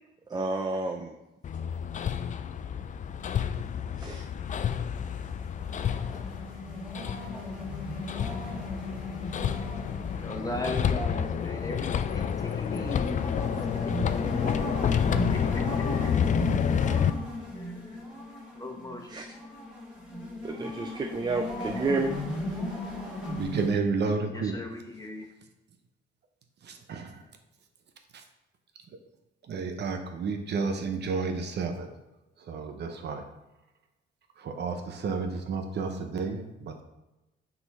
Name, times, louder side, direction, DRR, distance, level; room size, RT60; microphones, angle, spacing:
voice 1, 0.3-1.1 4.0-4.3 19.1-19.2 20.4-22.1, right 3 dB, 20° right, 4 dB, 0.5 m, -30 dB
Hammer, 1.4-17.1, left 8 dB, 40° left, 0.4 m, -30 dB
sound 1, 4.9-23.8, left 1 dB, 5° right, 2.1 m, -37 dB
voice 2, 10.2-13.6 14.0-14.4 15.3-16.1 17.5-18.0 18.5-19.1 24.3-25.2, left 1 dB, 20° left, 2 dB, 1.1 m, -38 dB
voice 3, 23.4-24.5 26.9-27.1 29.5-31.9 32.5-33.2 34.4-36.8, right 4 dB, 60° right, 5 dB, 0.8 m, -31 dB
5.7 x 4.0 x 4.2 m, 0.99 s
cardioid pair, 90°, 20 cm